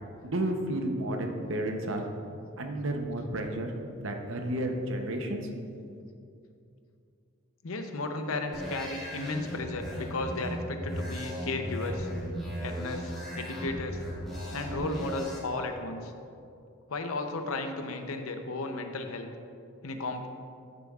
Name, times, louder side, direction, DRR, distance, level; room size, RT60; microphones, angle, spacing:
voice 1, 0.2-2.0 2.6-3.7 4.0-5.5, right 1 dB, 65° right, 4 dB, 0.8 m, -31 dB
voice 2, 7.6-12.1 12.6-14.0 14.5-16.1 16.9-19.3 19.8-20.3, left 2 dB, 85° left, 6 dB, 0.7 m, -34 dB
sound 1, 8.5-15.4, equal, ahead, 2.1 m, -37 dB
13.0 x 6.8 x 2.4 m, 2.5 s
head